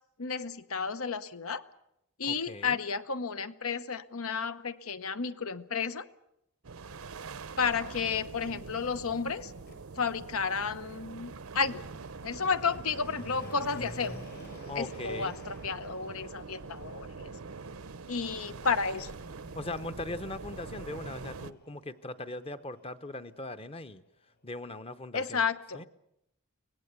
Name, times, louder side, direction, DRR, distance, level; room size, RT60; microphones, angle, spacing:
voice 1, 0.2-1.6 2.2-6.0 7.6-9.5 10.0-11.8 12.2-14.2 14.7-17.3 18.1-19.1 25.1-25.9, left 5 dB, 80° left, 13 dB, 1.0 m, -32 dB
voice 2, 2.2-2.8 14.7-15.4 19.6-24.0 24.4-25.4 25.7-25.9, left 2 dB, 25° left, 11 dB, 0.8 m, -40 dB
sound 1, 6.6-21.5, right 4 dB, 75° right, 0.8 m, -44 dB
Motor vehicle (road), 9.7-9.8 10.5-23.4 23.7-23.8, left 1 dB, 50° left, 6.1 m, -52 dB
24.0 x 18.5 x 8.2 m, 0.80 s
head